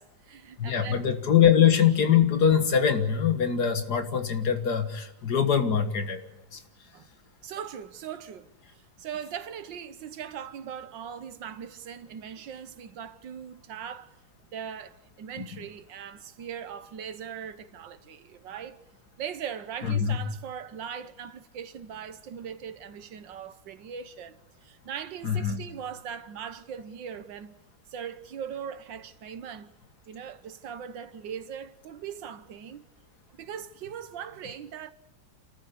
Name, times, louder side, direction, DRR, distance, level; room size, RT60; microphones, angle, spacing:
voice 1, 0.0-1.0 1.4-1.6 6.9-7.1 7.4-14.1 14.5-18.8 19.2-27.5 27.9-29.7 30.1-32.9 33.4-34.9, right 8 dB, 85° right, 1.8 m, -40 dB
voice 2, 0.6-6.6 15.4-15.5 19.8-20.2 25.2-25.6, left 8 dB, 60° left, 2.1 m, -23 dB
28.0 x 14.0 x 8.5 m
omnidirectional pair, 1.9 m